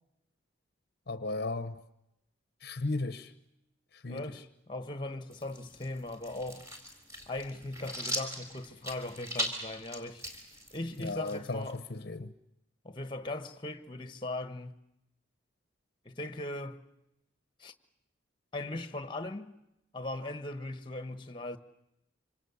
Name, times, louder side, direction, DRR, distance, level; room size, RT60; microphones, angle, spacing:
voice 1, 1.1-1.8 2.6-3.3 4.0-4.4 11.0-12.3, left 2 dB, 55° left, 0.9 m, -35 dB
voice 2, 4.1-6.7 7.3-10.2 10.7-11.8 12.2-12.3 12.8-14.8 16.0-16.8 17.6-17.7 18.5-19.5 19.9-21.6, left 2 dB, 25° left, 1.3 m, -39 dB
sound 1, 5.3-11.8, equal, 15° right, 4.1 m, -40 dB
26.5 x 26.0 x 7.1 m
head